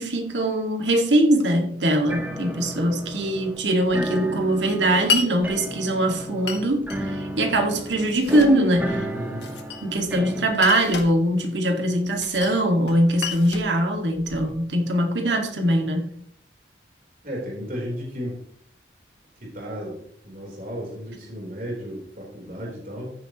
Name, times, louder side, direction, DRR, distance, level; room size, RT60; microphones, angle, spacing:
voice 1, 0.0-9.1 9.8-16.1, right 1 dB, 90° right, 2.1 m, -22 dB
sound 1, 2.1-10.4, right 1 dB, 10° right, 1.5 m, -33 dB
Glass, 5.1-5.3 6.5-7.0 7.9-8.6 9.4-10.1 10.5-11.1 12.2-12.6 12.9-14.5, left 6 dB, 80° left, 1.9 m, -30 dB
voice 2, 9.1-9.6 17.2-18.4 19.4-20.0 20.2-23.1, equal, 50° right, 4.0 m, -34 dB
14.5 x 10.0 x 3.1 m
head